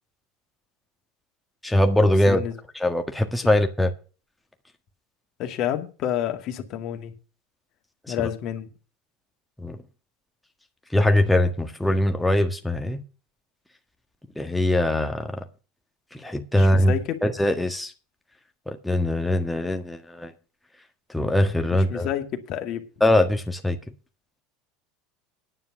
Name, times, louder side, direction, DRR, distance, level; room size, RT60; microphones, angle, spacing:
voice 1, 1.6-2.4 2.8-3.9 8.1-8.3 9.6-9.8 10.9-13.0 14.4-15.4 16.1-16.9 17.2-17.9 18.7-20.3 21.1-22.1 23.0-23.8, left 1 dB, 5° left, 1.6 m, -22 dB
voice 2, 2.2-2.5 3.4-3.5 5.4-7.1 8.1-8.7 16.5-17.2 21.7-22.8, left 10 dB, 50° left, 2.3 m, -29 dB
10.0 x 9.4 x 5.9 m
hypercardioid pair, 75°, 0 cm